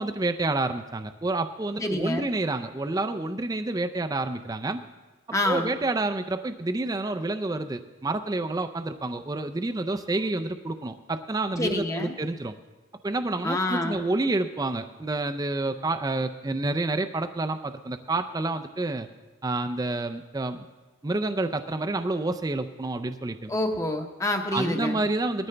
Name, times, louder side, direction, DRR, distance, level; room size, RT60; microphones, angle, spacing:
voice 1, 0.0-4.8 5.5-12.5 13.0-19.1 19.4-20.7 21.0-23.5 24.5-25.5, right 2 dB, 15° right, 7 dB, 0.4 m, -29 dB
voice 2, 1.8-2.3 5.3-5.7 11.6-12.1 13.4-14.0 23.5-25.0, left 1 dB, 15° left, 4 dB, 0.8 m, -27 dB
19.5 x 13.0 x 3.3 m, 1.2 s
head